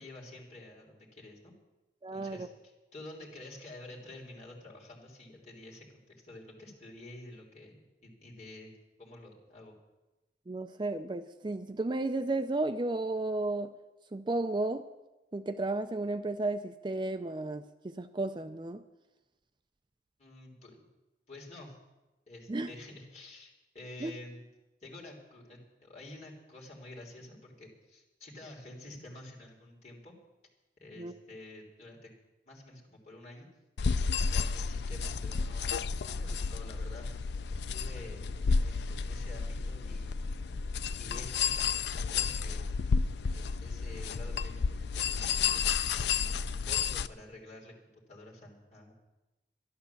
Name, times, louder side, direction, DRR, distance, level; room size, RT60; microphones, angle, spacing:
voice 1, 0.0-1.5 2.1-2.5 2.9-8.7 9.0-9.8 20.2-20.9 21.3-21.8 22.3-24.4 24.8-30.1 30.8-32.1 32.5-33.5 34.3-37.1 37.5-40.1 40.9-42.7 43.3-48.9, left 1 dB, 40° left, 3.4 m, -49 dB
voice 2, 2.0-2.5 10.5-13.7 14.1-14.9 15.3-18.8 22.5-22.7 24.0-24.1 31.0-31.1, right 2 dB, 25° right, 0.4 m, -33 dB
sound 1, 33.8-47.1, left 5 dB, 70° left, 0.4 m, -31 dB
12.5 x 11.5 x 7.1 m
head